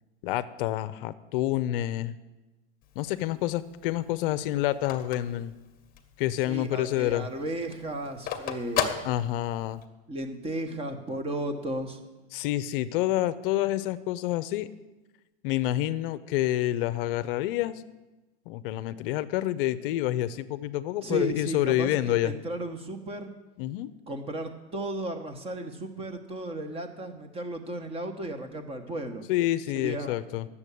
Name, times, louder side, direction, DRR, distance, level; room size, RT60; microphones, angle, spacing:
voice 1, 0.2-2.2 3.0-5.5 6.2-7.3 9.0-9.8 12.3-14.7 15.4-17.8 18.5-22.3 23.6-23.9 29.3-30.5, left 14 dB, 55° left, 15 dB, 0.6 m, -28 dB
Telephone, 2.8-6.2 6.6-6.7 7.0-9.8, left 8 dB, 25° left, 1.2 m, -34 dB
voice 2, 6.5-9.0 10.1-12.0 21.0-23.3 24.1-29.3 29.7-30.2, right 1 dB, 15° right, 7 dB, 1.2 m, -34 dB
10.5 x 7.2 x 8.3 m, 1.1 s
supercardioid pair, 140°, 34 cm